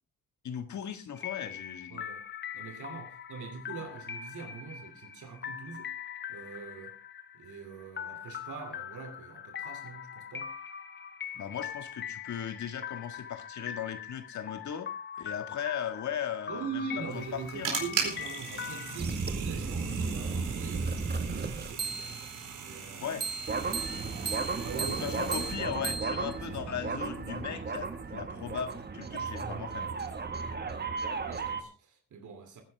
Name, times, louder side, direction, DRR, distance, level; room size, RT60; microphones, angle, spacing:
voice 1, 0.4-2.1 11.3-14.9 15.2-16.8 17.1-17.8 23.0-23.3 24.9-29.9, left 8 dB, 65° left, 1.7 m, -37 dB
sound 1, 1.2-19.0, left 8 dB, 35° left, 1.0 m, -42 dB
voice 2, 1.9-2.2 2.5-5.9 6.3-7.0 7.3-10.5 16.5-22.2 22.6-23.2 24.5-25.3 30.3-32.6, right 5 dB, 65° right, 2.7 m, -43 dB
sound 2, 17.1-25.5, right 6 dB, 85° right, 4.4 m, -39 dB
sound 3, 19.0-22.3 23.2-31.6, right 4 dB, 30° right, 1.6 m, -34 dB
19.5 x 10.5 x 3.4 m
cardioid pair, 125°, 32 cm